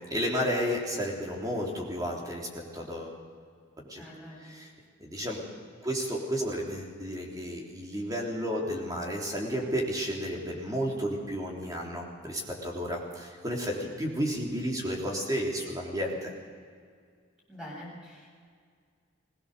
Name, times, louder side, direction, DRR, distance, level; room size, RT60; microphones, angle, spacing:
voice 1, 0.0-3.2 3.8-4.0 4.4-4.7 5.0-5.4 5.8-16.3, equal, 20° right, -2 dB, 3.5 m, -32 dB
voice 2, 4.0-4.6 17.5-18.3, equal, 5° right, -5 dB, 7.3 m, -45 dB
21.5 x 18.0 x 6.8 m, 2.1 s
head